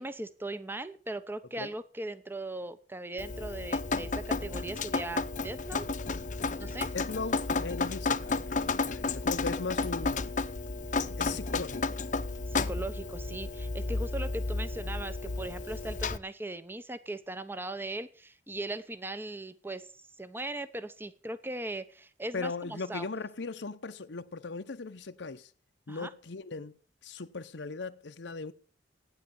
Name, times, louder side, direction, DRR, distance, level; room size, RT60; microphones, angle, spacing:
voice 1, 0.0-5.8 6.6-6.9 12.5-19.9 20.2-23.1 25.9-26.1, right 2 dB, 10° right, 0.8 m, -39 dB
Drip, 3.2-16.2, left 3 dB, 45° left, 0.8 m, -32 dB
voice 2, 6.8-10.3 11.2-12.0 22.3-25.5 25.9-26.8 27.0-28.5, left 4 dB, 75° left, 0.8 m, -38 dB
15.0 x 9.9 x 7.1 m
head